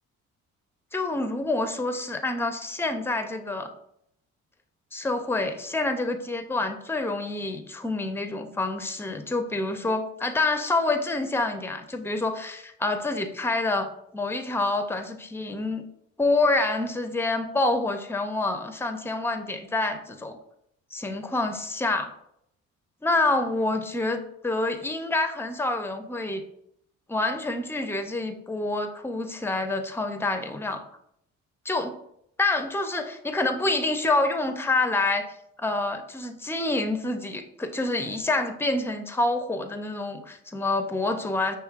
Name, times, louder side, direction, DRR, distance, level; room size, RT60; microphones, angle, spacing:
voice 1, 0.9-3.7 4.9-15.8 16.2-20.4 20.9-22.1 23.0-26.4 27.1-30.8 31.7-31.9 32.4-35.3 35.6-41.6, left 2 dB, 10° left, 7 dB, 0.4 m, -27 dB
5.8 x 3.0 x 2.4 m, 0.74 s
cardioid pair, 90°, 30 cm